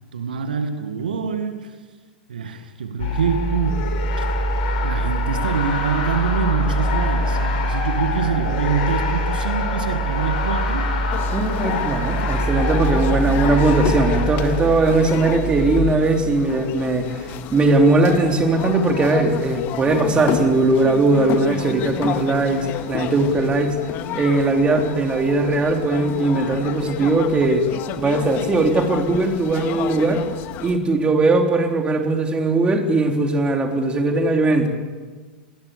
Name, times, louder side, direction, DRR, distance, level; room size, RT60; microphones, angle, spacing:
voice 1, 0.1-1.8 2.3-4.4 4.8-11.0, right 6 dB, 75° right, 8 dB, 1.9 m, -25 dB
sound 1, 3.0-15.8, equal, 60° left, 5.6 m, -23 dB
sound 2, 11.1-30.8, left 10 dB, 45° left, 1.8 m, -31 dB
voice 2, 11.3-23.8 24.1-27.7 28.0-30.2 30.6-34.7, right 2 dB, 20° right, 3 dB, 3.8 m, -19 dB
29.0 x 20.0 x 6.8 m, 1.4 s
figure-of-eight pair, 90°, 5 cm